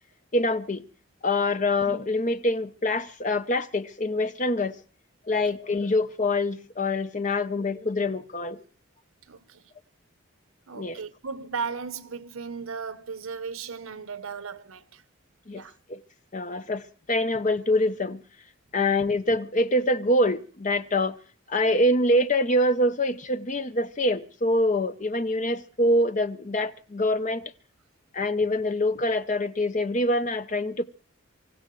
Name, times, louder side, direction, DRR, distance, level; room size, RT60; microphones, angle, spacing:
voice 1, 0.3-0.8 1.2-4.8 5.3-8.6 10.7-11.0 15.5-15.6 15.9-16.0 16.3-18.2 18.7-21.2 21.5-27.4 28.1-30.8, left 1 dB, 35° left, 0.7 m, -25 dB
voice 2, 9.3-9.6 10.7-15.0 15.5-15.8, right 5 dB, 80° right, 0.9 m, -36 dB
25.5 x 15.5 x 3.2 m
head